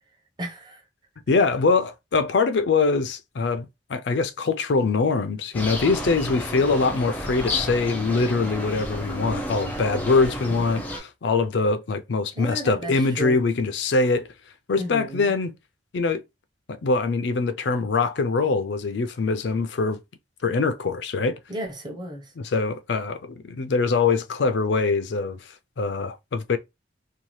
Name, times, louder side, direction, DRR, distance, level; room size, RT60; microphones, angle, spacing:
voice 1, 0.4-0.8 12.3-13.4 14.8-15.3 21.5-22.3, equal, 25° right, 0.8 m, -34 dB
voice 2, 1.3-14.3 14.7-15.5 15.9-16.2 16.7-20.0 20.4-21.4 22.4-25.5 25.8-26.6, left 4 dB, 70° left, 0.4 m, -23 dB
sound 1, 5.5-11.0, equal, 10° left, 0.5 m, -32 dB
2.7 x 2.2 x 3.1 m
head